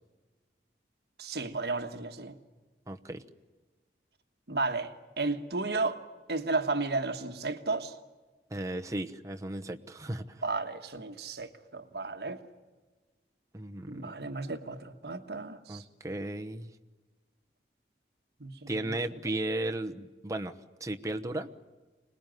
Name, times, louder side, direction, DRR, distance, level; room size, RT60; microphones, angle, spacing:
voice 1, 1.2-2.4 4.5-6.0 6.3-7.9 10.4-12.4 13.9-15.8 18.4-19.0, right 3 dB, 65° right, 1.4 m, -33 dB
voice 2, 2.9-3.2 8.5-10.4 13.5-14.2 15.7-16.7 18.7-20.5 20.8-21.5, right 1 dB, 20° right, 1.0 m, -35 dB
26.0 x 20.0 x 9.3 m
head